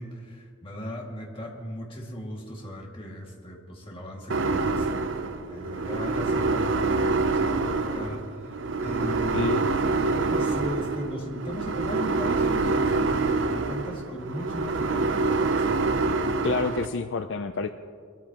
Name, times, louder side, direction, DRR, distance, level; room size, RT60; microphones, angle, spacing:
voice 1, 0.0-4.9 5.5-9.7 10.2-15.7, equal, 25° left, -1 dB, 2.2 m, -37 dB
sound 1, 4.3-16.8, right 3 dB, 65° right, 0.7 m, -26 dB
voice 2, 9.3-9.6 16.4-17.7, left 4 dB, 60° left, 8 dB, 0.5 m, -28 dB
23.0 x 13.5 x 3.0 m, 2.2 s
head